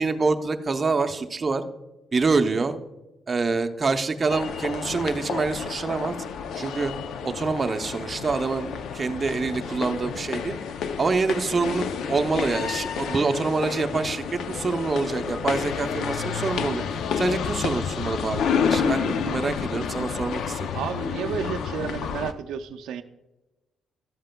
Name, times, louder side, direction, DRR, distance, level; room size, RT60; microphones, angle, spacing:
voice 1, 0.0-1.6 2.1-2.8 3.3-6.1 6.6-6.9 7.2-10.5 11.0-16.8 17.2-20.7, right 4 dB, 30° right, 7 dB, 0.6 m, -26 dB
sound 1, 4.3-22.3, left 6 dB, 75° left, 0.5 m, -30 dB
voice 2, 20.7-23.0, right 8 dB, 80° right, 7 dB, 0.4 m, -31 dB
12.5 x 7.4 x 2.2 m, 0.99 s
cardioid pair, 90°, 0 cm